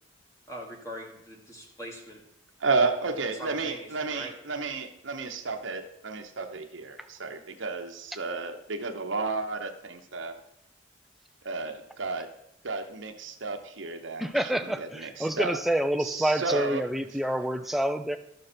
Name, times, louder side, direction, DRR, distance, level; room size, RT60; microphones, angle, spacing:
voice 1, 0.5-2.2 3.3-4.3, right 1 dB, 15° left, -1 dB, 1.5 m, -41 dB
voice 2, 2.6-10.4 11.4-12.3 12.6-15.6 16.0-16.8, right 4 dB, 80° right, 5 dB, 1.0 m, -32 dB
voice 3, 14.2-18.2, right 1 dB, ahead, 8 dB, 0.4 m, -28 dB
12.0 x 6.6 x 4.4 m, 0.77 s
head